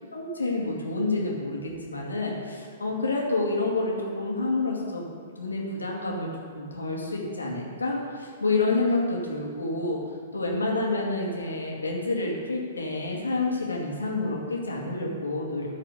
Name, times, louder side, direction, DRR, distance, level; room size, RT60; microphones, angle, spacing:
voice 1, 0.1-5.1 5.4-10.0 10.3-15.7, left 2 dB, 75° left, -2 dB, 2.1 m, -28 dB
14.0 x 4.9 x 6.7 m, 2.5 s
figure-of-eight pair, 110°, 0 cm